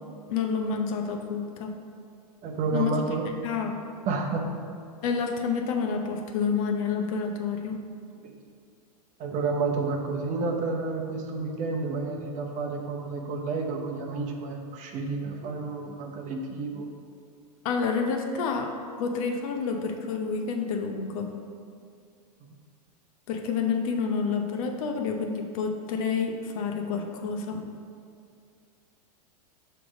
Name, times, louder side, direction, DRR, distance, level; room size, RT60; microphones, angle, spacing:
voice 1, 0.3-1.8 2.7-3.0 3.4-3.8 5.0-7.8 17.6-18.7 19.0-21.3 23.3-27.6, left 5 dB, 55° left, 3 dB, 0.7 m, -29 dB
voice 2, 2.4-3.3 4.1-4.5 8.2-8.3 9.2-16.9, right 4 dB, 35° right, 2 dB, 0.8 m, -30 dB
6.0 x 3.3 x 5.0 m, 2.3 s
hypercardioid pair, 105°, 21 cm